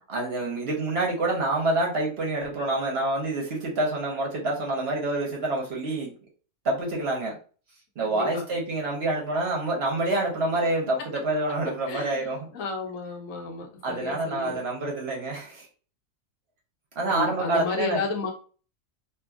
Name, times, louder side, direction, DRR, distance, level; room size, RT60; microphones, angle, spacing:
voice 1, 0.1-6.1 6.6-7.4 8.0-12.4 13.8-15.7 17.0-18.0, right 2 dB, 55° right, 0.9 m, -27 dB
voice 2, 8.1-8.5 11.9-14.6 17.1-18.3, left 4 dB, 75° left, 1.1 m, -32 dB
2.8 x 2.6 x 2.3 m
omnidirectional pair, 1.4 m